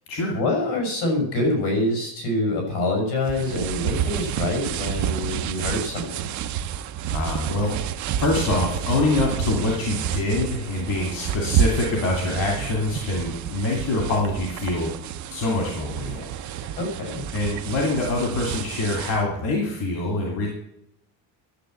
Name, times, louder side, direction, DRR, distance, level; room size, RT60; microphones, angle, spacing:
voice 1, 0.3-6.3 16.8-17.2, left 2 dB, 75° left, 2 dB, 6.2 m, -25 dB
sound 1, 3.2-19.2, right 9 dB, 45° right, 0.6 m, -29 dB
voice 2, 7.1-7.8 8.2-14.9 15.3-16.8 17.3-20.5, left 2 dB, 55° left, 0 dB, 2.6 m, -25 dB
11.5 x 7.6 x 7.7 m, 0.80 s
cardioid pair, 175°, 41 cm